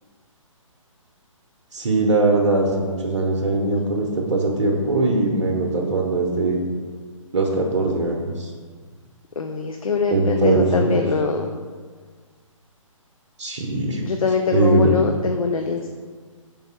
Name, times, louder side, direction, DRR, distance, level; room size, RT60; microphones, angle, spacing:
voice 1, 1.7-6.6 7.3-8.5 10.1-11.0 13.4-14.0 14.5-14.9, right 2 dB, 60° right, -1 dB, 0.7 m, -21 dB
voice 2, 9.4-11.5 14.0-15.9, left 5 dB, 90° left, 4 dB, 0.4 m, -23 dB
3.5 x 3.4 x 4.3 m, 1.5 s
figure-of-eight pair, 140°, 17 cm